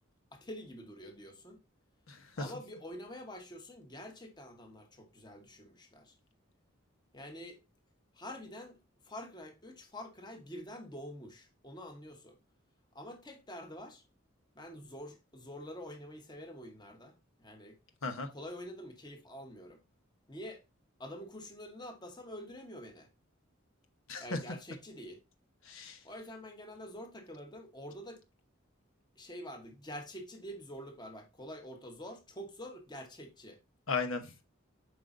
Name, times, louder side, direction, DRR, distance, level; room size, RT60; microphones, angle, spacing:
voice 1, 0.3-1.6 2.4-6.2 7.1-7.6 8.1-8.8 9.0-12.4 12.9-14.0 14.5-17.8 18.3-19.8 20.3-20.6 21.0-23.1 24.2-25.2 26.0-28.2 29.2-33.6, equal, 20° left, 1.1 m, -47 dB
voice 2, 24.1-24.4 25.6-26.0 33.9-34.4, left 4 dB, 80° left, 1.0 m, -36 dB
7.7 x 5.1 x 2.6 m
head